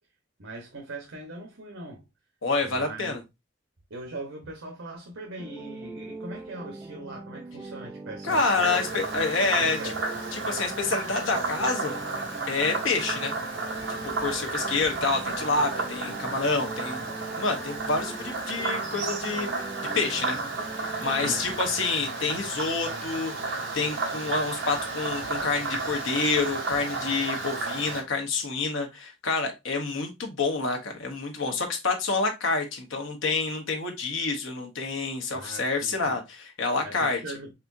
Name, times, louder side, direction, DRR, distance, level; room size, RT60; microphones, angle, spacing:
voice 1, 0.4-2.0 2.6-3.2 3.9-10.0 21.1-21.6 35.3-36.2 36.8-37.5, right 2 dB, 90° right, 1.0 m, -41 dB
voice 2, 2.4-3.2 8.2-9.9 10.3-12.0 12.5-13.3 14.0-17.1 17.3-19.7 19.9-20.4 21.0-23.3 23.7-37.2, left 3 dB, 90° left, 1.0 m, -28 dB
sound 1, 5.4-21.5, right 2 dB, 10° right, 0.3 m, -41 dB
Frog, 8.3-28.0, right 3 dB, 65° right, 1.1 m, -33 dB
4.2 x 3.5 x 2.6 m
head